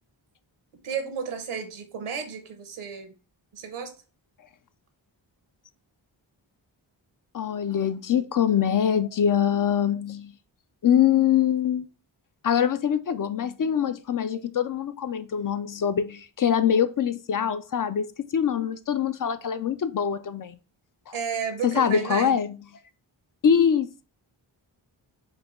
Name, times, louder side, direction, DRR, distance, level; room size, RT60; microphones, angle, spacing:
voice 1, 0.8-3.2 3.5-3.9 21.1-22.4, right 6 dB, 85° right, 1.0 m, -32 dB
voice 2, 7.3-10.3 10.8-11.9 12.4-20.6 21.1-21.2 21.6-22.6 23.4-24.0, left 8 dB, 45° left, 0.4 m, -24 dB
4.7 x 2.3 x 3.5 m
cardioid pair, 40°, 49 cm